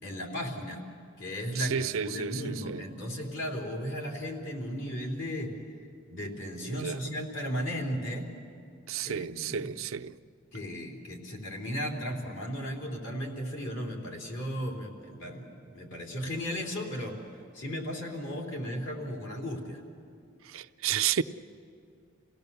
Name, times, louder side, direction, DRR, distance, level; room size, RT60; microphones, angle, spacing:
voice 1, 0.0-0.8 1.2-5.5 6.1-8.3 9.0-9.7 10.5-17.2 17.5-19.8, equal, 60° left, 3.5 m, -35 dB
voice 2, 1.6-2.8 6.7-7.0 8.9-10.1 20.5-21.2, right 8 dB, 80° right, 0.5 m, -31 dB
28.0 x 17.0 x 6.9 m
head